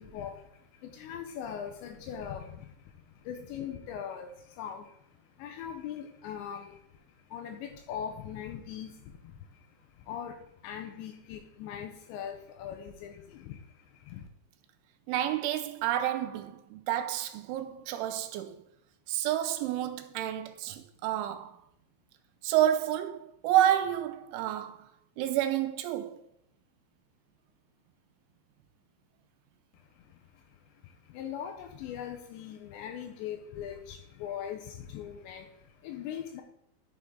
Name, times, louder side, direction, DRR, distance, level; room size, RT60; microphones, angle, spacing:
voice 1, 0.0-14.3 29.7-36.4, left 8 dB, 80° left, 2.7 m, -41 dB
voice 2, 15.1-18.6 19.1-21.5 22.4-24.9 25.2-26.2, right 12 dB, 85° right, 3.0 m, -29 dB
11.5 x 6.0 x 3.7 m
omnidirectional pair, 5.6 m